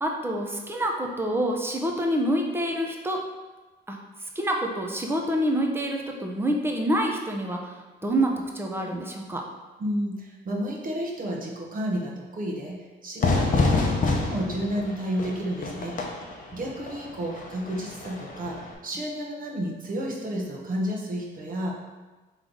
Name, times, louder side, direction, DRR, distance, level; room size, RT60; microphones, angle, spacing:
voice 1, 0.0-3.2 3.9-4.0 4.4-9.4, right 1 dB, 10° right, 1 dB, 0.7 m, -27 dB
voice 2, 9.8-16.0 16.5-21.7, equal, 45° right, -2 dB, 1.0 m, -31 dB
Fire / Fireworks, 13.2-18.7, left 3 dB, 45° left, 0.7 m, -27 dB
3.8 x 3.2 x 3.8 m, 1.2 s
cardioid pair, 90°, 20 cm